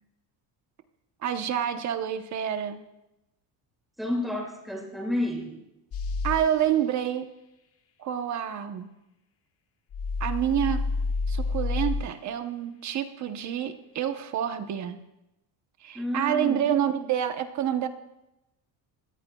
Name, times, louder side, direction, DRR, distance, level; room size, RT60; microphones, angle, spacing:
voice 1, 1.2-2.8 6.2-7.3 8.0-8.9 10.2-10.8 11.3-15.0 15.8-17.9, right 10 dB, 40° right, 8 dB, 1.0 m, -28 dB
voice 2, 4.0-5.6 15.9-16.6, left 1 dB, ahead, -1 dB, 2.4 m, -30 dB
sound 1, 5.9-6.4 9.9-12.0, left 3 dB, 35° left, 1.3 m, -28 dB
24.5 x 17.5 x 2.3 m, 0.91 s
cardioid pair, 170°, 42 cm